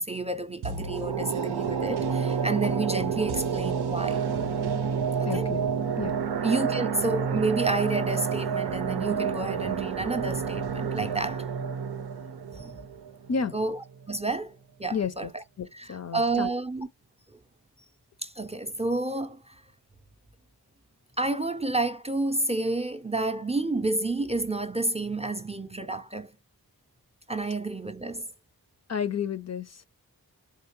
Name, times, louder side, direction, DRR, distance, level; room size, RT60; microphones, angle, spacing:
voice 1, 0.0-4.3 5.2-5.6 6.4-11.5 12.5-12.7 13.5-14.5 14.8-15.4 15.7-16.9 18.2-19.5 21.2-26.3 27.3-28.3, right 2 dB, 15° right, 0.5 m, -30 dB
sound 1, 0.6-13.7 14.0-14.1, right 6 dB, 85° right, 0.6 m, -29 dB
voice 2, 5.3-5.7 6.0-6.2 13.3-13.6 14.9-15.3 15.6-16.5 28.9-29.8, left 6 dB, 45° left, 0.5 m, -31 dB
3.6 x 2.8 x 3.0 m
cardioid pair, 45°, 39 cm